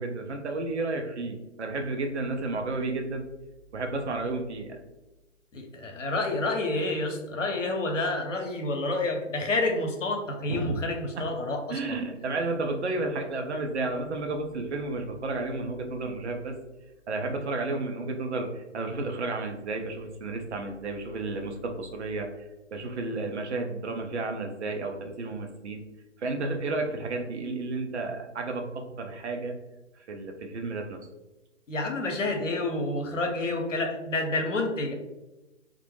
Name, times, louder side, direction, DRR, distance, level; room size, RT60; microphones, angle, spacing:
voice 1, 0.0-3.2 3.7-4.8 10.5-10.7 11.2-11.3 11.7-16.5 17.1-22.3 22.7-25.8 26.2-29.6 30.0-31.0, right 3 dB, 65° right, 3 dB, 0.6 m, -32 dB
voice 2, 5.5-12.0 31.7-34.9, left 2 dB, 80° left, 3 dB, 0.7 m, -29 dB
2.1 x 2.0 x 3.0 m, 1.0 s
figure-of-eight pair, 130°, 37 cm